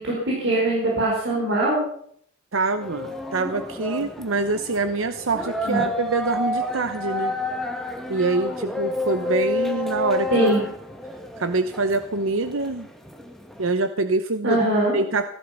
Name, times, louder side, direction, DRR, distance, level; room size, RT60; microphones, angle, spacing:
voice 1, 0.0-1.8 5.6-5.8 10.3-10.6 14.4-14.9, right 1 dB, 65° right, -3 dB, 4.9 m, -21 dB
voice 2, 2.5-7.3 8.1-10.5 11.4-12.9 13.6-14.6 14.9-15.3, right 3 dB, 85° right, 9 dB, 0.9 m, -25 dB
sound 1, 2.8-13.7, left 2 dB, ahead, 1.8 m, -30 dB
17.5 x 12.0 x 5.8 m, 0.64 s
head